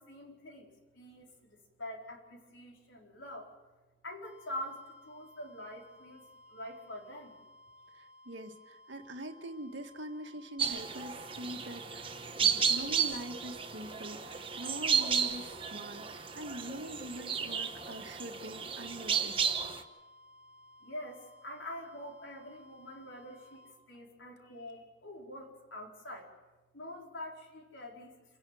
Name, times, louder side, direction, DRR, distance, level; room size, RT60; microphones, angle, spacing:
voice 1, 0.0-3.5 4.0-7.4 20.8-26.3 26.7-28.1, left 1 dB, 75° left, 0 dB, 4.6 m, -45 dB
sound 1, 4.2-23.8, left 1 dB, 5° right, 2.3 m, -58 dB
voice 2, 7.9-19.4, right 1 dB, 65° right, 5 dB, 1.8 m, -44 dB
sound 2, 10.6-19.8, right 7 dB, 25° right, 1.1 m, -33 dB
27.5 x 11.0 x 9.3 m, 1.2 s
head